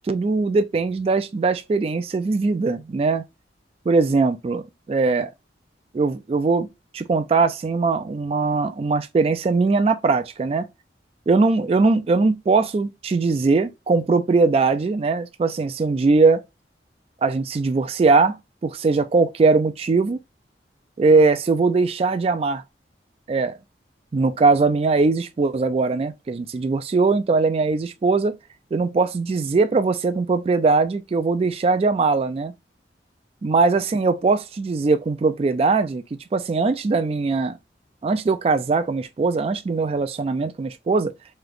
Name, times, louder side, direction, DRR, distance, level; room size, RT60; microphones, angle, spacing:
voice 1, 0.1-3.2 3.9-5.3 5.9-6.7 6.9-10.7 11.3-16.4 17.2-18.4 18.6-20.2 21.0-22.6 23.3-23.5 24.1-28.3 28.7-32.5 33.4-36.0 36.3-37.5 38.0-41.1, right 4 dB, 35° right, 0.3 m, -20 dB
3.2 x 2.8 x 3.8 m
head